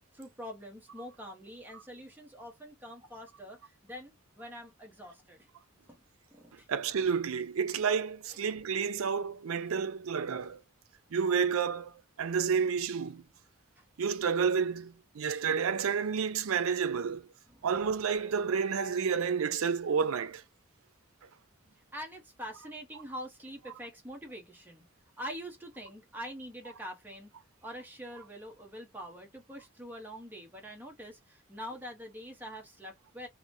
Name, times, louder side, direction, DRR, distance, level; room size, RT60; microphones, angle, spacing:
voice 1, 0.1-5.5 5.9-6.0 6.3-6.7 13.8-13.9 17.5-17.7 21.9-24.8 25.2-27.3 27.6-33.3, equal, 10° right, 0.8 m, -45 dB
voice 2, 6.7-10.6 11.1-13.2 14.0-17.2 17.6-20.4, right 6 dB, 90° right, 0.5 m, -30 dB
2.9 x 2.1 x 2.5 m
head